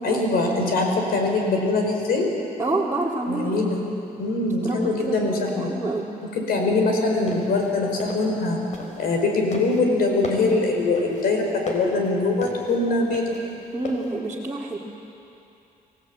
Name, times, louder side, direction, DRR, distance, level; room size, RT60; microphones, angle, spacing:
voice 1, 0.0-2.3 3.3-3.8 4.2-5.7 6.4-8.6 9.0-13.3, left 3 dB, 80° left, 1 dB, 4.7 m, -23 dB
voice 2, 2.6-3.6 4.6-6.1 13.7-14.8, right 2 dB, 15° right, -6 dB, 2.4 m, -28 dB
sound 1, 7.1-9.2 9.5-14.1, left 2 dB, 50° left, 4.5 m, -36 dB
25.0 x 17.0 x 8.7 m, 2.8 s
cardioid pair, 110°, 16 cm